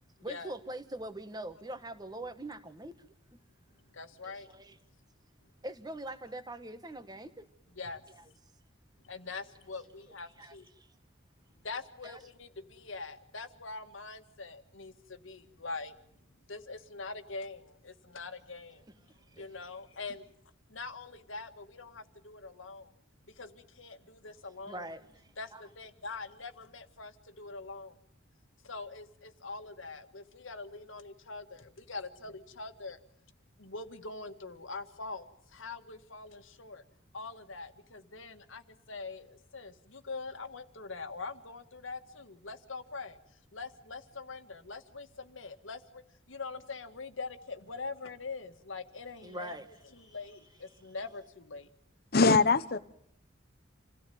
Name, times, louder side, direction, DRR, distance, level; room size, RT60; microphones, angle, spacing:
voice 1, 0.2-3.4 4.2-4.8 5.6-7.5 8.1-8.2 10.4-10.9 12.0-12.2 19.1-19.5 24.7-25.6 49.2-49.7 50.1-50.2, right 1 dB, 20° right, 10 dB, 1.5 m, -43 dB
voice 2, 3.9-4.6 7.8-8.0 9.0-10.7 11.6-16.0 16.5-18.9 19.3-20.3 20.7-22.9 23.3-24.9 25.4-28.0 28.6-33.0 33.6-36.8 37.1-43.2 43.5-46.0 46.3-51.7, left 3 dB, 80° left, 8 dB, 1.8 m, -43 dB
voice 3, 52.1-52.8, left 4 dB, 50° left, 11 dB, 0.9 m, -22 dB
28.0 x 17.0 x 9.4 m, 0.72 s
head